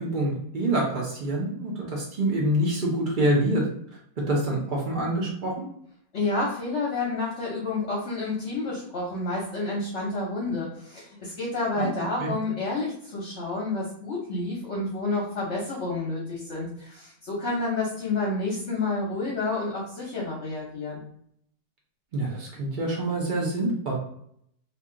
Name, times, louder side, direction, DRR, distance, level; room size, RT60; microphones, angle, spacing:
voice 1, 0.0-3.7 4.2-5.7 11.8-12.3 22.1-24.0, right 1 dB, 85° right, -2 dB, 0.4 m, -26 dB
voice 2, 6.1-21.0, left 3 dB, 50° left, -3 dB, 0.9 m, -29 dB
2.9 x 2.6 x 3.6 m, 0.70 s
omnidirectional pair, 1.9 m